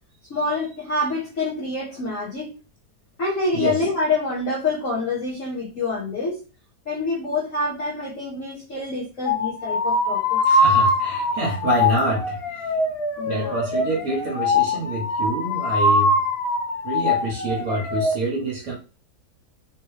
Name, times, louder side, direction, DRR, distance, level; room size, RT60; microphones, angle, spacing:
voice 1, 0.3-2.5 3.2-6.4 6.9-10.6 13.2-13.6, left 3 dB, 55° left, -6 dB, 1.3 m, -26 dB
sound 1, 9.3-18.1, left 2 dB, 85° left, 0.5 m, -22 dB
voice 2, 10.4-12.9 13.3-16.1 16.8-18.8, right 2 dB, 60° right, -1 dB, 1.4 m, -26 dB
3.6 x 3.0 x 3.1 m, 0.33 s
omnidirectional pair, 1.8 m